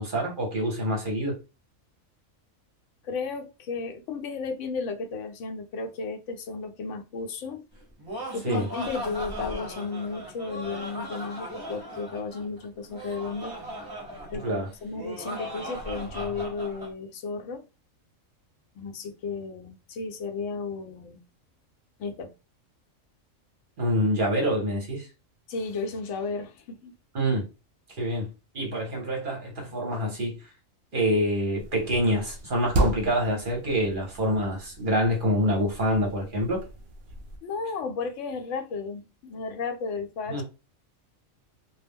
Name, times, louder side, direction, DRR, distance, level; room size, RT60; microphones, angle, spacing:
voice 1, 0.0-1.4 8.4-8.7 14.4-14.7 23.8-25.1 27.1-27.5 27.9-30.4 30.9-36.6 40.3-40.4, equal, 45° right, 0.8 m, -26 dB
voice 2, 3.0-7.6 8.3-13.5 14.3-17.6 18.8-21.2 22.0-22.3 25.5-26.9 37.4-40.4, left 4 dB, 70° left, 0.9 m, -34 dB
Laughter, 7.8-16.9, equal, 20° right, 0.7 m, -38 dB
sound 1, 31.6-37.4, right 2 dB, 65° right, 0.5 m, -34 dB
2.3 x 2.0 x 3.4 m
omnidirectional pair, 1.4 m